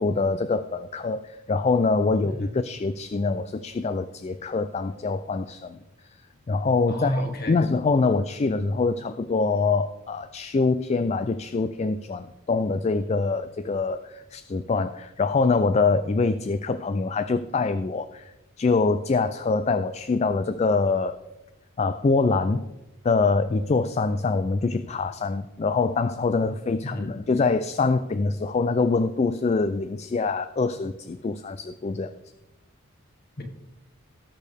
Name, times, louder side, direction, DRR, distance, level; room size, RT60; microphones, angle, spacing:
voice 1, 0.0-5.8 6.5-7.1 7.4-21.2 21.8-22.6 23.0-32.1, left 4 dB, 30° left, 12 dB, 0.3 m, -24 dB
voice 2, 6.9-7.6 26.5-27.1 33.4-33.5, equal, 45° left, 4 dB, 1.6 m, -31 dB
18.0 x 6.4 x 3.4 m, 0.99 s
head